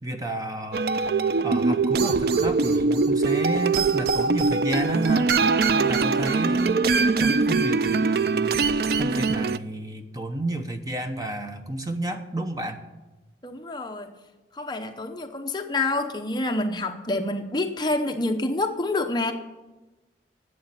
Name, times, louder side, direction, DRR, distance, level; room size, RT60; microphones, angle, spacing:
voice 1, 0.0-0.9 1.4-5.3 5.7-6.8 7.2-8.6 9.0-12.8, right 1 dB, 20° right, 6 dB, 0.9 m, -31 dB
sound 1, 0.7-9.6, right 4 dB, 55° right, 0.4 m, -22 dB
voice 2, 13.4-14.1 14.5-19.3, left 2 dB, 25° left, 5 dB, 0.8 m, -27 dB
11.5 x 8.0 x 9.7 m, 1.1 s
head